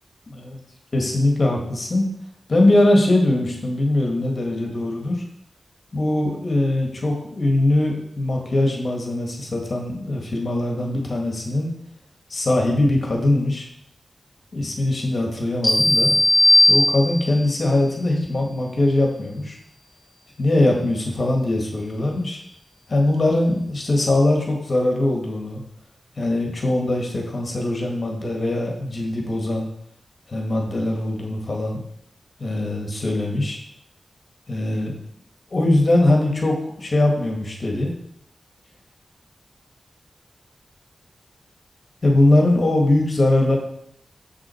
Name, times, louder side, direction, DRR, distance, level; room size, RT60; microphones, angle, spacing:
voice 1, 0.3-0.6 0.9-2.1 2.5-5.2 5.9-11.7 12.3-13.7 14.5-16.2 16.6-19.6 20.4-22.4 22.9-25.6 26.2-29.7 30.3-31.8 32.4-33.6 34.5-34.9 35.5-37.9 42.0-43.6, left 1 dB, 50° left, 1 dB, 1.8 m, -21 dB
sound 1, 15.6-17.4, left 1 dB, ahead, 3.3 m, -16 dB
7.3 x 6.2 x 4.5 m, 0.71 s
wide cardioid pair, 85°, 0 cm